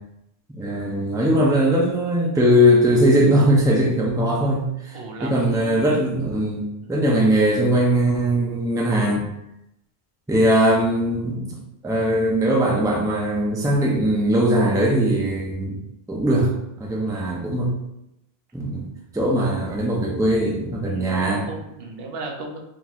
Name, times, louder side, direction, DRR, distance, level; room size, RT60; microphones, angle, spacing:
voice 1, 0.6-6.6 6.9-9.3 10.3-15.8 16.1-16.5 16.8-17.7 18.5-18.9 19.1-21.4, equal, 5° right, -2 dB, 0.4 m, -20 dB
voice 2, 4.9-5.8 6.8-6.9 17.0-17.4 20.9-22.6, right 3 dB, 75° right, 1 dB, 0.9 m, -36 dB
3.8 x 2.8 x 2.4 m, 0.85 s
omnidirectional pair, 1.0 m